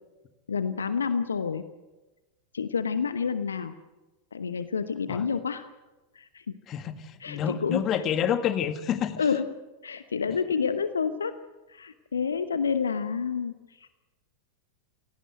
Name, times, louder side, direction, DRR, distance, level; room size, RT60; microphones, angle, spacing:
voice 1, 0.5-1.6 2.5-3.7 4.3-5.7 6.1-6.5 7.2-8.0 9.2-9.5 9.8-11.3 11.7-14.0, left 6 dB, 70° left, 12 dB, 1.0 m, -29 dB
voice 2, 6.7-9.2, left 9 dB, 30° left, 10 dB, 2.0 m, -28 dB
28.0 x 17.5 x 7.9 m, 1.1 s
figure-of-eight pair, 90°, 0 cm